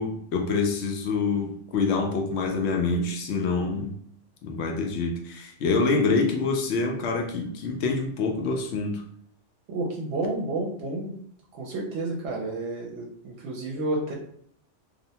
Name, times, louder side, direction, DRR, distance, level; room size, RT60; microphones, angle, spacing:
voice 1, 0.0-4.0 4.4-9.0, left 4 dB, 70° left, 3 dB, 0.8 m, -26 dB
voice 2, 9.7-11.1 11.5-14.1, right 2 dB, 70° right, -2 dB, 0.8 m, -30 dB
2.6 x 2.0 x 2.7 m, 0.65 s
omnidirectional pair, 1.2 m